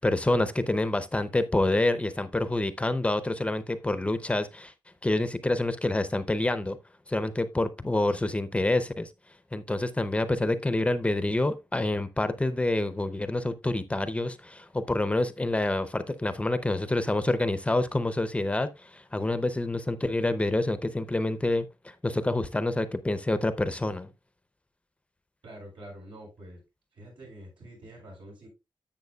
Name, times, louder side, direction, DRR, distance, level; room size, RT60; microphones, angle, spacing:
voice 1, 0.0-4.7 5.0-6.8 7.1-9.1 9.5-24.1, left 2 dB, 15° left, 0.6 m, -27 dB
voice 2, 25.4-26.6 26.9-28.5, right 1 dB, 90° right, 5.5 m, -46 dB
11.0 x 7.5 x 2.3 m
wide cardioid pair, 165°, 8 cm